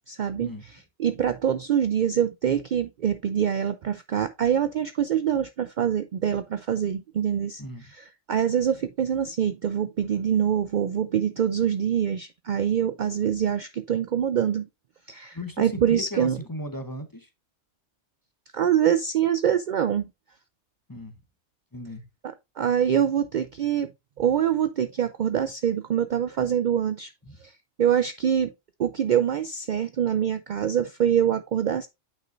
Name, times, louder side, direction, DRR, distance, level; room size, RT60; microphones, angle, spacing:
voice 1, 0.1-0.5 1.0-7.6 7.9-14.7 15.1-16.4 18.5-20.1 22.2-23.9 24.2-27.1 27.4-27.5 27.8-28.5 28.8-31.9, right 9 dB, 75° right, 0.4 m, -25 dB
voice 2, 7.6-7.9 15.3-17.3 20.9-21.2 21.7-22.0, left 1 dB, 20° left, 0.8 m, -36 dB
9.0 x 5.5 x 2.5 m
omnidirectional pair, 1.3 m